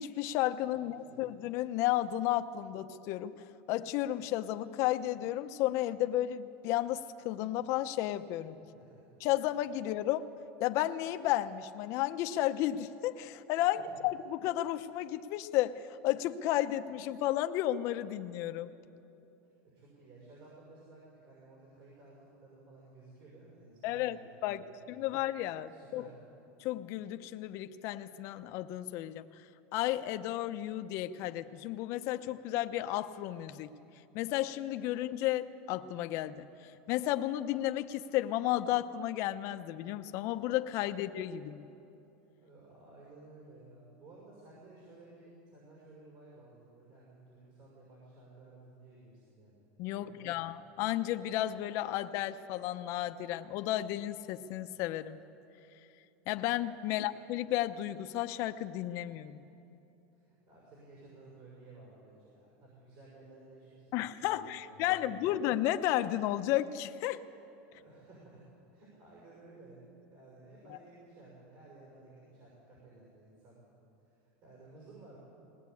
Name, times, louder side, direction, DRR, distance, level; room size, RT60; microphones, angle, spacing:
voice 1, 0.0-8.6 9.2-10.3 10.6-18.7 23.8-26.0 26.6-29.2 29.7-33.7 34.1-41.7 49.8-55.2 56.3-59.4 63.9-67.2, left 13 dB, 45° left, 9 dB, 0.7 m, -33 dB
voice 2, 0.8-1.3 8.6-9.1 13.7-14.0 19.7-25.2 25.7-26.2 42.4-49.7 49.9-50.5 56.9-57.1 60.1-65.4 67.6-68.4 68.7-69.8 70.1-73.7 74.1-75.2, right 2 dB, 45° right, -4 dB, 6.4 m, -56 dB
20.5 x 18.5 x 8.4 m, 2.9 s
supercardioid pair, 160°, 7 cm